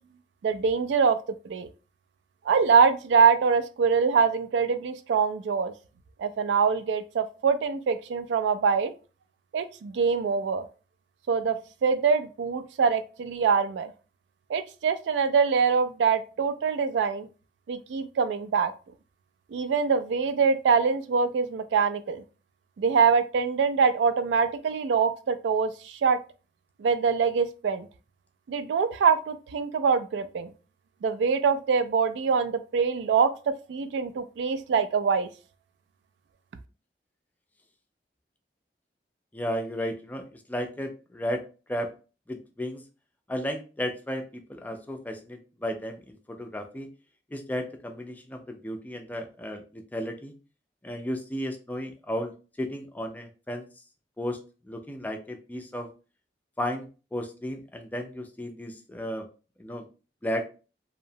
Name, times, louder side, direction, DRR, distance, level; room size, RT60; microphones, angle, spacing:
voice 1, 0.4-1.2 1.5-1.7 2.5-5.7 6.2-8.9 9.5-10.6 11.3-13.9 14.5-17.3 17.7-18.7 19.5-22.2 22.8-26.2 26.8-27.9 28.5-30.5 31.0-35.3, right 5 dB, 85° right, 11 dB, 0.3 m, -24 dB
voice 2, 39.3-41.9 42.3-42.8 43.3-46.9 47.3-50.3 50.8-53.7 54.2-54.4 54.7-55.9 56.6-59.3 59.6-59.9 60.2-60.5, equal, 10° left, 4 dB, 0.3 m, -34 dB
2.7 x 2.0 x 2.6 m, 0.34 s
head